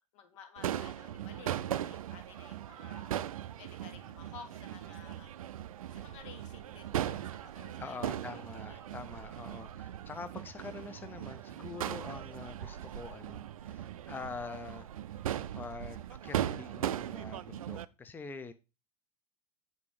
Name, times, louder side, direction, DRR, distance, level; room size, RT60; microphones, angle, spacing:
voice 1, 0.1-3.1 3.6-5.3 5.9-9.0, left 6 dB, 55° left, 1.6 m, -54 dB
Crowd / Fireworks, 0.6-17.9, right 11 dB, 65° right, 0.4 m, -39 dB
voice 2, 7.8-14.9 15.5-18.5, left 4 dB, 10° left, 0.6 m, -45 dB
8.3 x 4.0 x 4.9 m
figure-of-eight pair, 85°, 19 cm